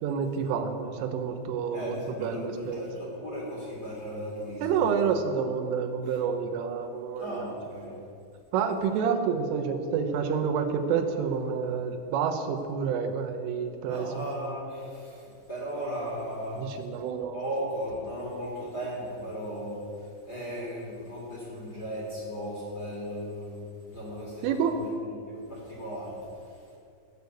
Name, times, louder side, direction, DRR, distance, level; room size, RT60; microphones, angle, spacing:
voice 1, 0.0-2.0 2.2-2.8 4.6-7.5 8.5-14.1 16.6-17.4 24.4-24.7, right 6 dB, 80° right, 6 dB, 3.6 m, -28 dB
voice 2, 1.7-4.8 6.1-6.2 7.2-7.9 9.2-9.3 13.9-16.6 17.3-23.6 23.9-26.6, equal, 20° left, -6 dB, 3.5 m, -36 dB
18.5 x 6.9 x 8.3 m, 2.4 s
omnidirectional pair, 5.8 m